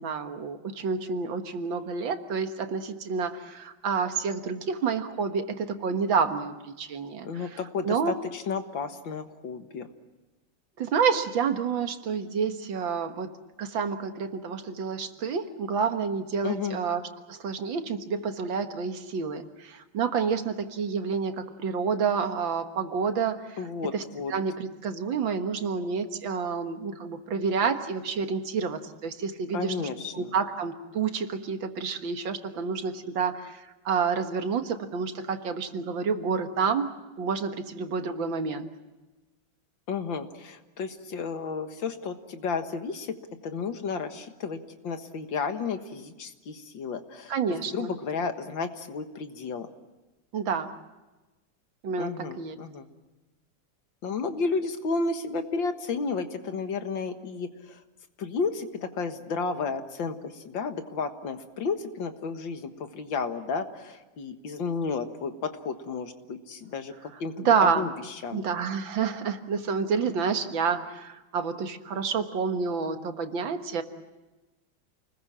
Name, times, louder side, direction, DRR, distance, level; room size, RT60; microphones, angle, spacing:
voice 1, 0.0-7.6 7.8-8.1 10.8-13.3 13.6-17.0 17.3-23.6 23.9-24.0 24.3-29.7 30.1-36.9 37.2-38.7 47.3-47.9 50.3-50.7 51.8-52.6 67.5-67.9 68.3-73.8, right 5 dB, 80° right, 7 dB, 2.2 m, -29 dB
voice 2, 7.2-9.9 16.4-16.8 23.6-24.3 29.5-30.3 39.9-43.2 43.4-49.7 52.0-52.9 54.0-57.8 58.2-68.4, left 4 dB, 80° left, 7 dB, 2.3 m, -32 dB
29.0 x 20.5 x 7.4 m, 1.1 s
omnidirectional pair, 2.1 m